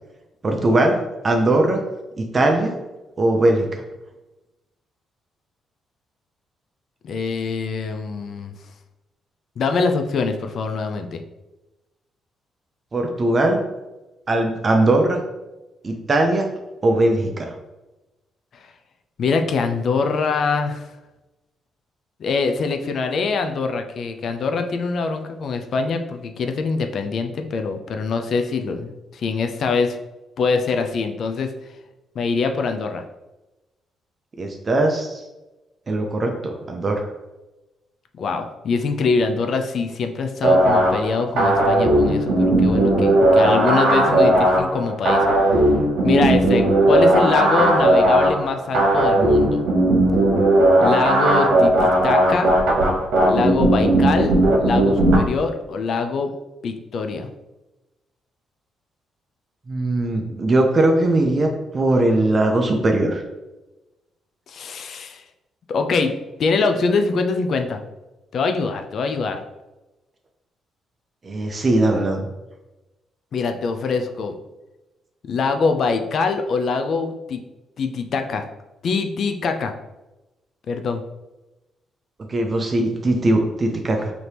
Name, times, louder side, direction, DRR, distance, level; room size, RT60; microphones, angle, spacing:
voice 1, 0.4-1.0 1.2-1.8 2.2-2.8 3.2-3.8 12.9-13.6 14.3-15.2 15.8-16.5 16.8-17.5 34.4-35.2 35.9-37.0 59.7-63.2 71.2-72.3 82.3-84.1, right 2 dB, 35° right, 3 dB, 0.6 m, -20 dB
voice 2, 7.0-8.5 9.6-11.2 19.2-20.9 22.2-30.0 30.4-31.5 32.2-33.0 38.2-45.3 46.0-49.6 50.8-52.5 53.2-56.3 56.6-57.3 64.5-65.2 65.7-66.1 66.4-67.8 68.3-69.4 73.3-74.3 75.3-77.4 77.8-78.4 78.8-79.7 80.7-81.0, left 4 dB, 60° left, 6 dB, 0.4 m, -23 dB
sound 1, 40.4-55.2, right 1 dB, 80° right, 1.1 m, -17 dB
4.1 x 2.9 x 3.3 m, 1.0 s
cardioid pair, 90°, 0 cm